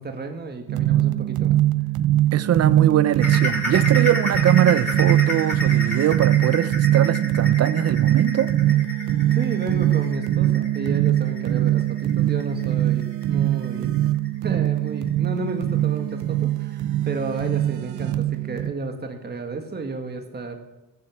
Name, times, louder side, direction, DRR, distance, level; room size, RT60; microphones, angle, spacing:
voice 1, 0.0-1.6 9.3-13.9 14.4-20.5, right 3 dB, 35° right, 1.9 m, -32 dB
sound 1, 0.7-18.7, right 13 dB, 80° right, 0.6 m, -22 dB
voice 2, 2.3-8.5, right 10 dB, 55° right, 0.8 m, -22 dB
sound 2, 3.2-14.5 14.9-15.1 15.5-15.6 16.1-16.2, left 1 dB, 5° left, 5.8 m, -30 dB
15.0 x 8.6 x 7.3 m
cardioid pair, 90°, 30 cm